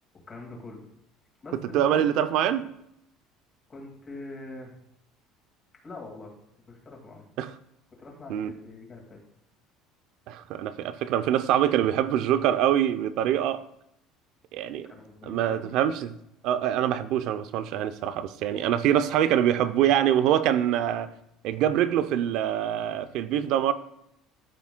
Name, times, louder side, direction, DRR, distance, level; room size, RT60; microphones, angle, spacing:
voice 1, 0.3-0.9 1.4-2.1 2.5-2.6 3.7-4.7 5.8-6.3 6.7-7.3 7.9-9.2 14.8-15.7, left 2 dB, 25° left, 2.0 m, -43 dB
voice 2, 1.7-2.6 7.4-7.5 8.3-8.5 10.3-13.6 14.5-14.9 15.3-16.1 16.4-21.1 21.4-23.7, right 10 dB, 60° right, 0.5 m, -24 dB
13.5 x 5.9 x 2.2 m
cardioid pair, 150°, 0 cm